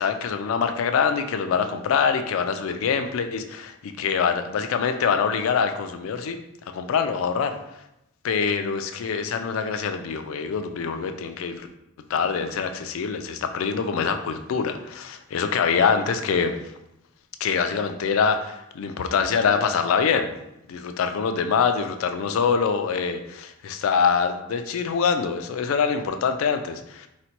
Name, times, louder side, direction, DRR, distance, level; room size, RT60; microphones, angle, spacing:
voice 1, 0.0-6.4 6.7-7.6 8.2-11.7 12.1-16.6 17.4-20.3 20.7-27.1, left 6 dB, 75° left, 8 dB, 0.3 m, -24 dB
4.0 x 2.1 x 2.9 m, 0.87 s
head